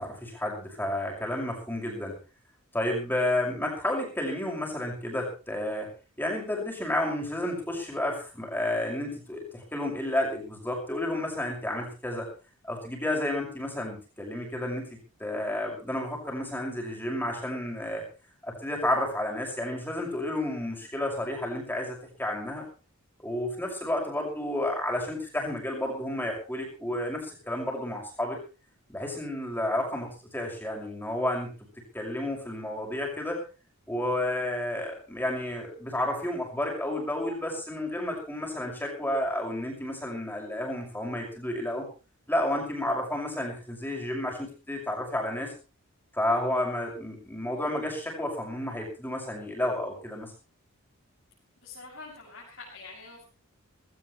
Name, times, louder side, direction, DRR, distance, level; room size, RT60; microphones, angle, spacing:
voice 1, 0.0-2.2 2.7-5.9 6.2-12.3 12.6-18.0 18.4-22.7 23.2-28.4 28.9-31.5 31.9-33.4 33.9-41.9 42.3-45.5 46.1-50.3, left 1 dB, 10° left, 0 dB, 6.2 m, -31 dB
voice 2, 51.6-53.2, left 3 dB, 55° left, -7 dB, 7.3 m, -45 dB
19.0 x 17.5 x 3.3 m, 0.34 s
head